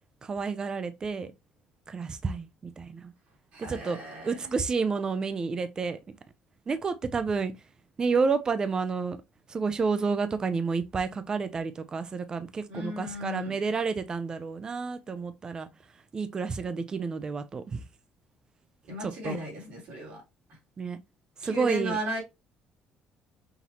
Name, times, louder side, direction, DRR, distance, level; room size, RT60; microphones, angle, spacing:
voice 1, 0.2-1.3 1.9-3.1 3.7-4.0 4.2-6.0 6.7-7.5 8.0-9.2 9.5-15.7 16.1-17.8 19.0-19.4 20.8-21.0 21.4-22.0, right 5 dB, 30° right, 0.5 m, -30 dB
voice 2, 3.5-4.4 12.7-13.5 18.9-20.2 21.4-22.2, equal, 75° right, 3.0 m, -35 dB
5.8 x 2.7 x 2.9 m
cardioid pair, 100°, 2 cm